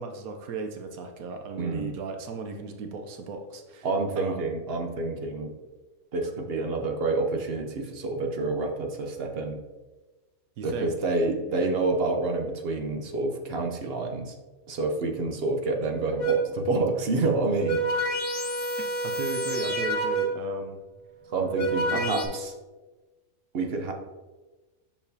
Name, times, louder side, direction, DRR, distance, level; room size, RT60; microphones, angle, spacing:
voice 1, 0.0-3.9 4.2-4.5 10.6-10.9 11.6-11.8 19.0-20.8 21.9-22.4, right 4 dB, 85° right, 5 dB, 1.2 m, -36 dB
voice 2, 1.6-1.9 3.8-5.5 6.1-9.6 10.6-14.3 14.7-18.1 21.3-22.5 23.5-23.9, right 3 dB, 50° right, 3 dB, 0.9 m, -28 dB
sound 1, 16.2-16.6 17.4-20.5 21.3-22.3, right 1 dB, 65° left, 1.2 m, -29 dB
6.7 x 5.7 x 2.7 m, 1.2 s
omnidirectional pair, 1.5 m